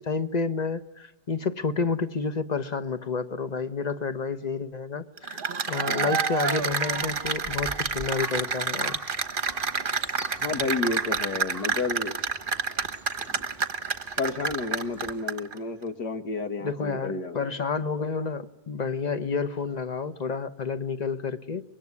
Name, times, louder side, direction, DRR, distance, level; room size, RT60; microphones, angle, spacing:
voice 1, 0.0-9.0 16.6-21.6, left 5 dB, 30° left, 11 dB, 1.0 m, -30 dB
Cheering / Applause, 5.2-15.5, right 5 dB, 35° right, 1.2 m, -28 dB
voice 2, 5.9-6.2 10.4-12.2 14.2-17.5, left 3 dB, 85° left, 7 dB, 2.4 m, -31 dB
Crow, 6.3-15.2, right 1 dB, ahead, 2.0 m, -47 dB
24.5 x 22.5 x 9.7 m, 0.98 s
omnidirectional pair, 1.8 m